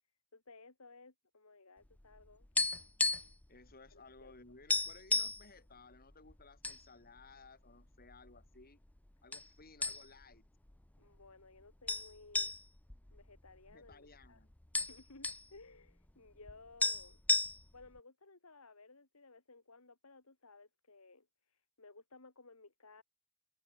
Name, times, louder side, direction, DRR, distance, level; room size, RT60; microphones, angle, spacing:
voice 1, 0.3-2.5 3.9-4.3 11.0-12.5 13.1-14.4 14.8-17.2 17.7-23.0, left 3 dB, 75° left, 2.9 m, -58 dB
sound 1, 2.0-3.5 3.7-3.9 4.3-4.4 4.7-5.4 6.1-6.8 7.2-7.3 8.0-8.6 9.3-9.5 9.8-10.3 10.7-10.8 11.9-13.9 14.2-14.3 14.5-15.5 16.5-16.6 16.8-17.9, left 3 dB, 5° left, 0.4 m, -33 dB
voice 2, 3.5-8.8 9.2-10.4 13.7-14.5, left 3 dB, 45° left, 6.3 m, -58 dB
head